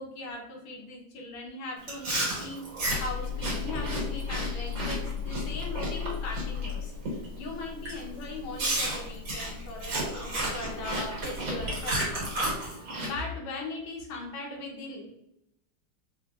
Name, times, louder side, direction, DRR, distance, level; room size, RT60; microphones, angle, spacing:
voice 1, 0.0-2.6 3.0-6.9 7.3-15.1, left 2 dB, 85° left, 0 dB, 1.7 m, -39 dB
Chewing mastication, 1.8-6.7 7.1-7.4 7.9-8.0 8.6-13.1, right 1 dB, 50° right, 1.5 m, -32 dB
sound 1, 2.8-12.6, left 6 dB, 55° left, 1.6 m, -38 dB
4.3 x 2.8 x 2.3 m, 0.81 s
omnidirectional pair, 2.2 m